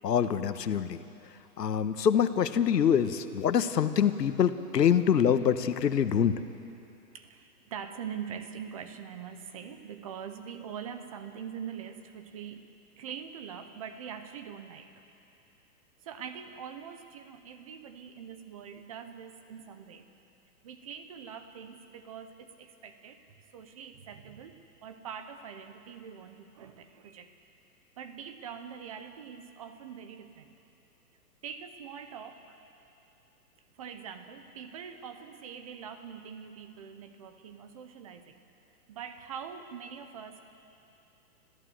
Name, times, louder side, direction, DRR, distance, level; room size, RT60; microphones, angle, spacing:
voice 1, 0.0-1.0 1.6-6.3, left 8 dB, 85° left, 11 dB, 1.3 m, -25 dB
voice 2, 7.1-12.7 13.0-14.9 16.0-20.1 20.6-23.2 23.5-27.3 28.0-30.6 31.4-32.6 33.7-38.4 38.9-40.4, right 7 dB, 25° right, 8 dB, 0.7 m, -43 dB
27.0 x 15.0 x 7.8 m, 2.8 s
hypercardioid pair, 155°, 48 cm